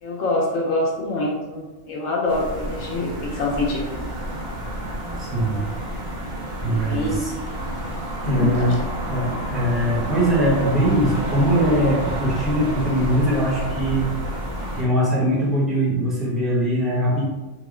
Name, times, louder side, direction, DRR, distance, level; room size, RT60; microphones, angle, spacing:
voice 1, 0.0-4.1 6.9-7.2 8.2-8.5, left 2 dB, 85° left, -2 dB, 1.0 m, -25 dB
sound 1, 2.3-14.8, equal, 40° right, 0.9 m, -29 dB
voice 2, 4.9-5.6 6.6-7.3 8.2-8.7 9.1-14.1 14.8-17.2, right 1 dB, ahead, -7 dB, 0.8 m, -21 dB
3.4 x 2.1 x 3.6 m, 1.1 s
omnidirectional pair, 1.3 m